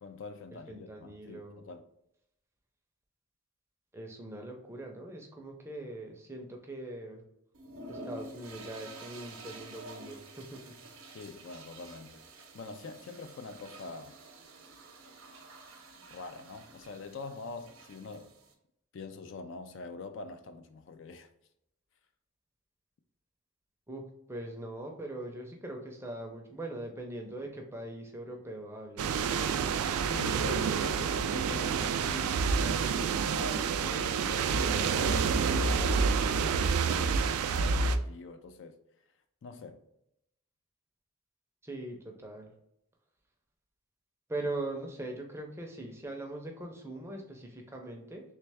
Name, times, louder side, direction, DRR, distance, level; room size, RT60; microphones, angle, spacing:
voice 1, 0.0-1.8 11.1-12.2 12.5-14.2 16.1-18.3 18.9-21.3 30.1-38.7 39.4-39.8, left 3 dB, 55° left, 0.3 m, -44 dB
voice 2, 0.7-1.7 3.9-7.2 7.9-10.7 23.9-24.0 24.3-29.3 41.6-42.5 44.3-48.2, right 2 dB, 10° right, 0.5 m, -41 dB
sound 1, 7.5-18.5, right 2 dB, 65° right, 0.7 m, -49 dB
sound 2, 29.0-38.0, right 5 dB, 80° right, 0.3 m, -28 dB
3.3 x 3.2 x 3.4 m
head